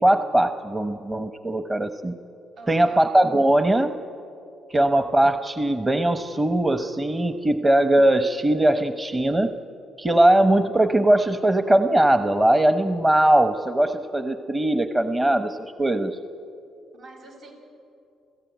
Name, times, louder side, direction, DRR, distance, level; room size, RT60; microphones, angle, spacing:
voice 1, 0.0-2.2 2.7-4.0 4.7-9.5 10.0-16.2, right 1 dB, 20° right, 8 dB, 1.0 m, -20 dB
voice 2, 2.6-3.0 16.9-17.5, right 3 dB, 75° right, 1 dB, 6.2 m, -45 dB
28.0 x 15.5 x 9.3 m, 2.6 s
cardioid pair, 90°, 0 cm